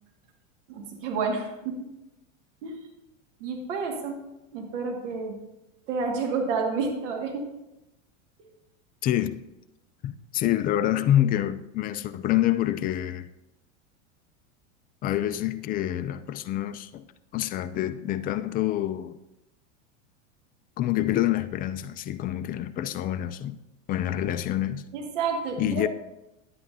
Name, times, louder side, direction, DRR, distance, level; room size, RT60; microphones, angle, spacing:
voice 1, 0.7-1.9 2.6-2.8 3.4-4.2 4.5-5.4 5.9-7.5 24.9-25.9, right 4 dB, 70° right, 1.9 m, -30 dB
voice 2, 9.0-9.4 10.0-13.3 15.0-17.0 17.3-19.1 20.8-23.6 23.9-24.8 25.6-25.9, left 12 dB, 25° left, 0.3 m, -27 dB
10.0 x 8.7 x 2.7 m
hypercardioid pair, 110°, 39 cm